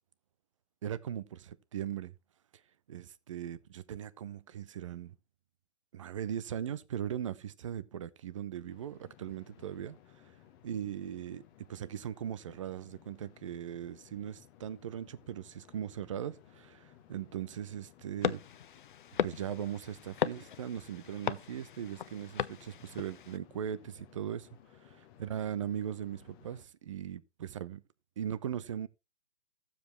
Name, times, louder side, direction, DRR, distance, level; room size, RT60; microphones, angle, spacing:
voice 1, 0.8-2.1 2.9-5.2 5.9-10.0 10.2-10.3 10.6-18.4 19.2-24.5 24.7-24.8 25.2-27.8 28.2-28.9, right 9 dB, 30° right, 0.5 m, -39 dB
sound 1, 8.7-26.6, left 12 dB, 20° left, 1.0 m, -60 dB
sound 2, 18.2-23.4, left 9 dB, 50° left, 0.5 m, -37 dB
14.5 x 7.3 x 3.2 m
figure-of-eight pair, 135°, 34 cm